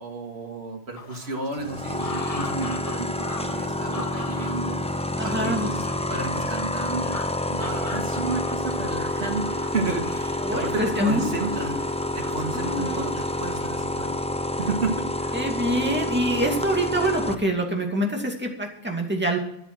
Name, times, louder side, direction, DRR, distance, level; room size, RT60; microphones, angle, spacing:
voice 1, 0.0-5.8 6.1-7.1 7.5-11.8 12.2-14.2 14.6-15.4, right 4 dB, 80° right, 3 dB, 2.2 m, -32 dB
sound 1, 1.0-13.7, left 3 dB, 35° left, 1.3 m, -41 dB
sound 2, 1.6-17.3, left 1 dB, 10° left, 0.5 m, -28 dB
voice 2, 5.2-5.7 7.0-7.2 10.4-11.8 12.5-13.1 15.3-19.4, right 1 dB, 10° right, 0 dB, 2.5 m, -26 dB
13.0 x 10.0 x 6.2 m, 0.76 s
omnidirectional pair, 1.1 m